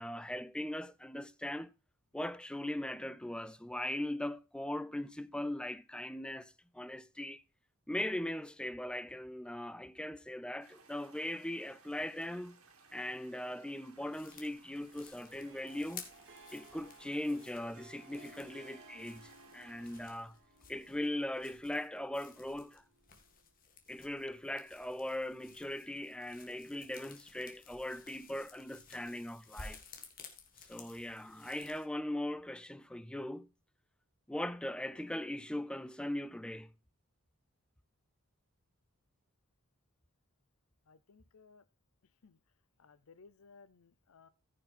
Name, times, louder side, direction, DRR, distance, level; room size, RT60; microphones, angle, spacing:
voice 1, 0.0-1.7 2.1-7.4 7.9-12.6 12.9-16.0 16.5-20.4 20.7-22.8 23.9-29.8 30.7-33.5 34.3-36.7, left 1 dB, 5° left, 0.4 m, -39 dB
sound 1, 10.6-20.2, right 4 dB, 80° right, 2.4 m, -62 dB
sound 2, 14.1-31.9, left 5 dB, 40° left, 2.0 m, -55 dB
Harp, 15.2-23.5, right 3 dB, 55° right, 2.1 m, -60 dB
voice 2, 40.9-41.6 42.2-42.4 42.8-44.3, left 4 dB, 80° left, 0.6 m, -60 dB
14.5 x 6.5 x 4.3 m
head